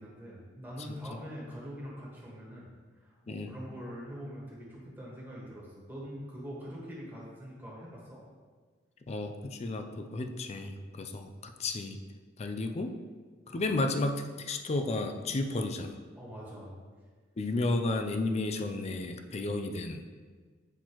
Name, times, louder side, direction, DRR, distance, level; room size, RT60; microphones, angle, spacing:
voice 1, 0.0-2.7 3.0-8.2 13.5-13.7 16.1-16.8, equal, 10° right, -6 dB, 1.5 m, -44 dB
voice 2, 9.1-12.0 12.4-13.0 13.5-16.0 17.4-20.0, left 2 dB, 35° left, 6 dB, 0.4 m, -32 dB
7.8 x 4.4 x 3.0 m, 1.5 s
head